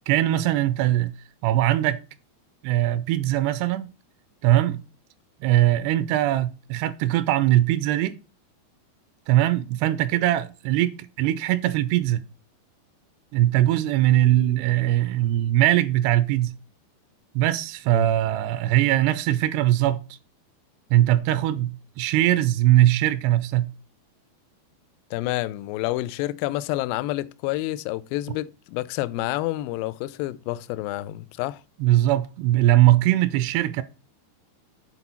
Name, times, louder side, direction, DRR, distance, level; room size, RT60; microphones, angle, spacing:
voice 1, 0.1-1.1 1.4-2.0 2.6-3.9 4.4-4.8 5.4-8.1 9.3-12.2 13.3-16.5 17.4-20.0 20.9-23.7 31.8-33.8, right 14 dB, 85° right, 2.6 m, -21 dB
voice 2, 25.1-31.6, left 17 dB, 85° left, 2.0 m, -29 dB
8.2 x 4.2 x 5.7 m
omnidirectional pair, 4.7 m